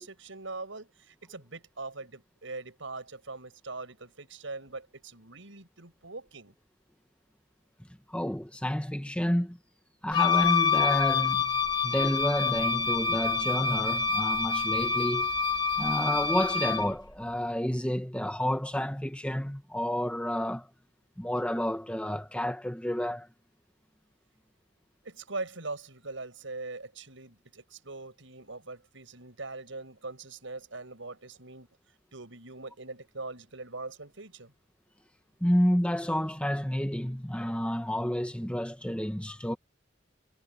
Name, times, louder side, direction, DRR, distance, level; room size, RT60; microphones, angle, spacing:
voice 1, 0.0-6.5 25.0-31.7 32.1-34.5, right 3 dB, 75° right, 5.8 m, -42 dB
voice 2, 8.1-9.6 10.0-15.3 15.8-20.7 21.2-23.3 35.4-39.6, equal, 5° left, 1.4 m, -30 dB
Wind instrument woodwind instrument, 10.1-16.9, left 6 dB, 25° left, 2.4 m, -27 dB
head